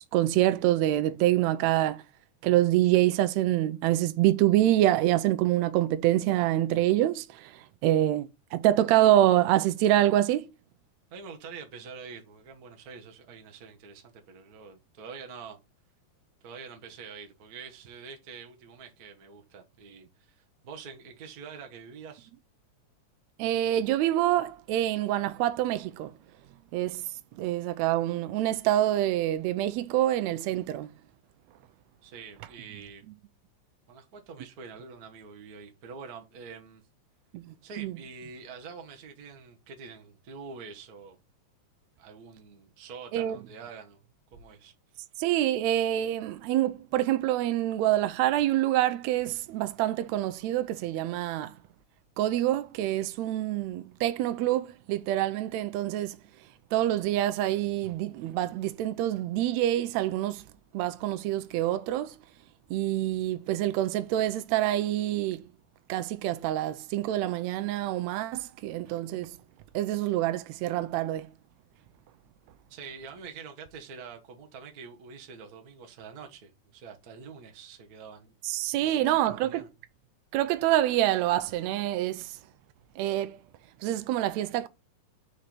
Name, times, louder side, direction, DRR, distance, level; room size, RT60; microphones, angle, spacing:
voice 1, 0.0-2.0 2.4-10.5 23.4-26.1 26.7-27.0 27.4-30.9 37.3-37.9 43.1-43.4 45.2-51.5 52.2-56.2 56.7-60.4 60.7-62.1 62.7-65.4 65.9-69.4 69.7-71.3 78.4-79.7 80.3-82.4 83.0-83.4 83.8-84.7, right 13 dB, 80° right, 1.7 m, -26 dB
voice 2, 11.1-15.6 16.4-22.3 32.0-33.0 33.9-36.8 37.6-41.2 42.0-44.0 44.3-44.7 72.7-78.3 79.3-79.7, right 5 dB, 60° right, 0.9 m, -45 dB
5.1 x 4.4 x 5.9 m
omnidirectional pair, 3.5 m